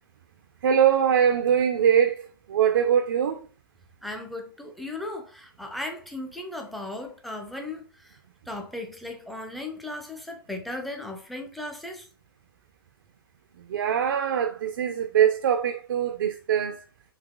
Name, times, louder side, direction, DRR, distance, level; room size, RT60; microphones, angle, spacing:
voice 1, 0.6-3.5 13.7-16.8, right 8 dB, 65° right, 0.4 m, -22 dB
voice 2, 4.0-8.2 8.5-12.1, left 2 dB, ahead, 0.5 m, -36 dB
3.9 x 2.8 x 2.2 m
figure-of-eight pair, 115°, 12 cm